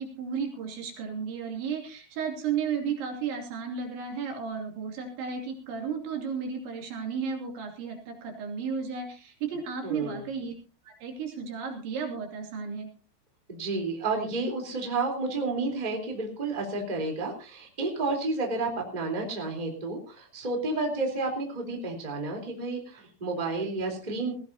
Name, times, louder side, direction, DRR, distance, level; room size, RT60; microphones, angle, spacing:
voice 1, 0.0-10.5 10.8-12.9, right 6 dB, 65° right, 2 dB, 5.0 m, -33 dB
voice 2, 9.8-10.3 13.5-24.4, right 3 dB, 10° right, 2 dB, 2.8 m, -31 dB
20.0 x 15.5 x 2.8 m, 0.33 s
omnidirectional pair, 5.8 m